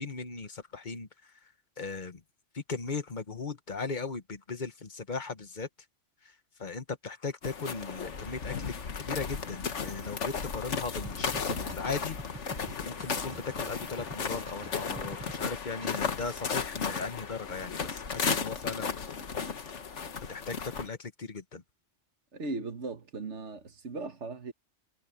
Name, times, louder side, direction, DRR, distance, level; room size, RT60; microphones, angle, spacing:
voice 1, 0.0-1.3 1.8-2.2 2.5-5.7 6.6-19.0 20.3-21.6, left 4 dB, 40° left, 1.3 m, -38 dB
sound 1, 7.4-20.9, left 5 dB, 75° left, 1.7 m, -35 dB
sound 2, 11.0-15.5 15.8-16.2, right 2 dB, 15° right, 0.9 m, -47 dB
voice 2, 22.3-24.5, right 3 dB, 70° right, 1.8 m, -38 dB
omnidirectional pair, 1.2 m